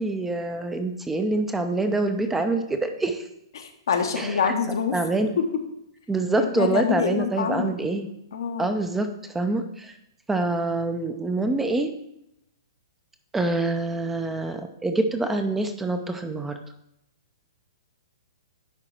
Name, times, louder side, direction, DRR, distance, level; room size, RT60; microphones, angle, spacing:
voice 1, 0.0-3.3 4.2-4.5 4.9-5.4 6.1-8.1 8.6-9.9 10.3-11.9 13.3-16.6, right 2 dB, 10° right, 6 dB, 0.6 m, -26 dB
voice 2, 3.5-5.0 6.4-7.7 8.3-8.7, left 6 dB, 65° left, 5 dB, 1.0 m, -26 dB
10.5 x 3.8 x 4.5 m, 0.81 s
figure-of-eight pair, 115°, 2 cm